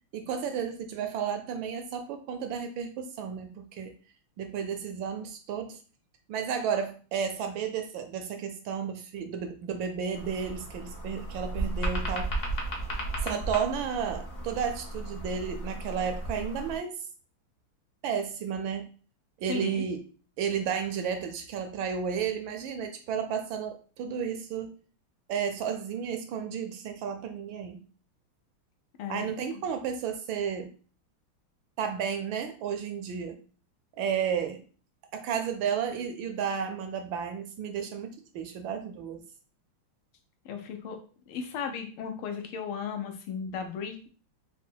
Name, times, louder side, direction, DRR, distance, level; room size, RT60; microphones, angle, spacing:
voice 1, 0.1-4.0 4.4-5.8 6.3-12.3 13.2-17.0 18.0-18.9 19.4-20.0 20.4-24.8 25.3-27.8 29.1-30.7 31.8-33.4 34.0-34.6 35.1-39.2, right 7 dB, 75° right, 6 dB, 1.3 m, -32 dB
sound 1, 10.1-16.8, right 2 dB, 50° left, 0.7 m, -34 dB
voice 2, 19.5-19.8 29.0-29.3 40.4-41.0 41.3-44.1, left 6 dB, 90° left, 5 dB, 1.6 m, -35 dB
4.1 x 2.1 x 4.4 m, 0.39 s
omnidirectional pair, 2.3 m